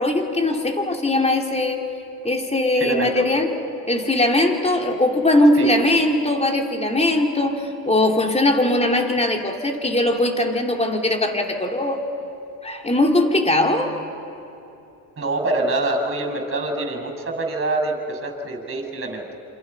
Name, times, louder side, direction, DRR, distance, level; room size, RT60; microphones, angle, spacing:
voice 1, 0.0-1.8 2.2-3.5 3.9-12.0 12.6-13.9, left 1 dB, 15° left, 2 dB, 3.4 m, -20 dB
voice 2, 2.8-3.3 5.6-5.7 15.2-19.2, right 2 dB, 30° right, 4 dB, 6.8 m, -25 dB
28.0 x 27.5 x 5.7 m, 2.8 s
cardioid pair, 80°, 42 cm